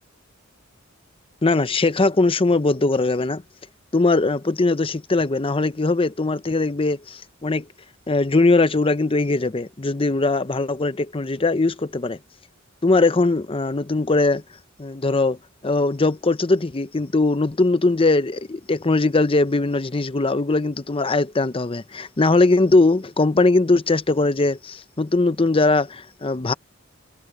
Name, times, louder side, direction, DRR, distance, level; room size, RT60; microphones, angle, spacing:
voice 1, 1.4-3.4 3.9-7.7 8.1-12.2 12.8-14.4 14.8-15.4 15.6-26.5, left 3 dB, 25° left, 0.7 m, -20 dB
head